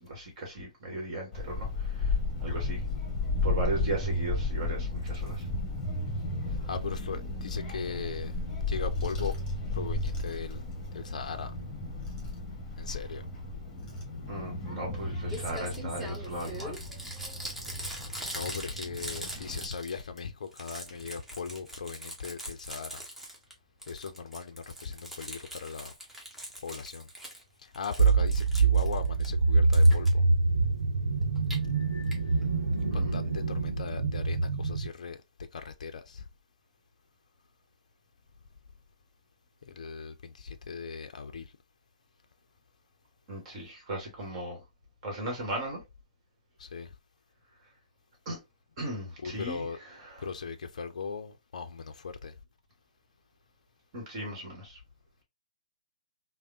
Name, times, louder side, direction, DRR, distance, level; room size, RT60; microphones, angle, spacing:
voice 1, 0.0-2.1 2.4-2.8 3.4-5.4 14.3-16.8 32.9-33.2 43.3-44.6 45.0-45.8 48.2-48.4 48.8-50.2 53.9-54.8, right 1 dB, 40° right, 1.2 m, -37 dB
Child speech kid speaking / Wind, 1.3-19.7, left 2 dB, 15° left, 1.1 m, -34 dB
voice 2, 6.7-8.3 8.7-9.3 9.7-10.6 10.9-11.5 12.8-13.2 18.3-23.0 23.9-25.9 26.6-27.1 27.6-30.2 32.8-35.2 35.5-36.2 39.6-41.5 46.6-46.9 49.2-49.8 50.2-52.3, left 5 dB, 65° left, 0.4 m, -38 dB
Crumpling crinkling, 15.0-15.1 15.3-20.2 20.5-23.5 23.8-27.4 27.7-29.3 29.7-30.1 31.2-31.6 32.1-32.2 32.4-32.5 32.7-32.8, equal, 5° right, 0.7 m, -42 dB
sound 1, 28.0-34.9, right 3 dB, 85° right, 0.8 m, -25 dB
3.3 x 2.0 x 2.5 m
figure-of-eight pair, 130°, 4 cm